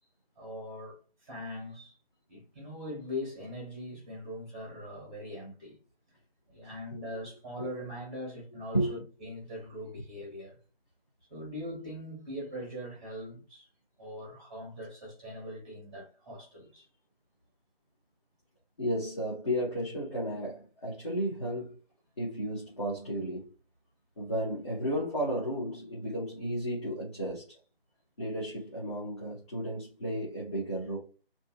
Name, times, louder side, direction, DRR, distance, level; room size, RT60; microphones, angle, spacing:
voice 1, 0.4-2.0 2.3-5.8 6.5-10.6 11.3-13.7 14.0-16.9, left 1 dB, 10° right, 0.9 m, -41 dB
voice 2, 18.8-21.7 22.2-23.5 24.2-27.6 28.2-31.0, equal, 30° left, 0.8 m, -33 dB
2.6 x 2.5 x 2.2 m
figure-of-eight pair, 160°, 30 cm